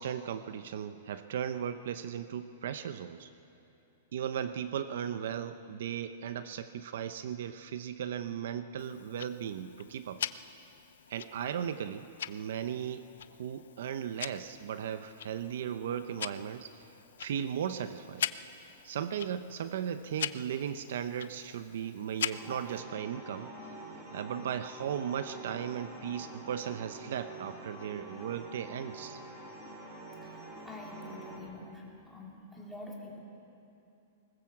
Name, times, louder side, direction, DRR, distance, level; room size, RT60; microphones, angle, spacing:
voice 1, 0.0-3.3 4.1-10.2 11.1-16.9 17.2-18.3 18.8-29.2, right 9 dB, 65° right, 11 dB, 0.8 m, -37 dB
Tick-tock, 8.8-22.8, left 9 dB, 80° left, 0.6 m, -42 dB
sound 1, 22.3-31.4, right 2 dB, 15° right, 4.3 m, -46 dB
voice 2, 30.2-33.2, left 2 dB, ahead, -5 dB, 3.3 m, -47 dB
20.0 x 20.0 x 7.4 m, 2.8 s
supercardioid pair, 165°, 0 cm